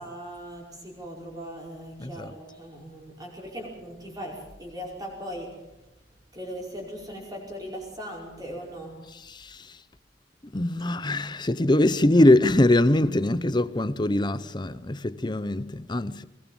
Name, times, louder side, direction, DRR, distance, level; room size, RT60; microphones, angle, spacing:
voice 1, 0.0-5.6 6.3-9.0, equal, 20° right, 5.3 m, -39 dB
voice 2, 2.0-2.4 9.1-9.8 10.4-16.2, left 1 dB, 25° left, 0.8 m, -23 dB
21.0 x 19.5 x 7.2 m
head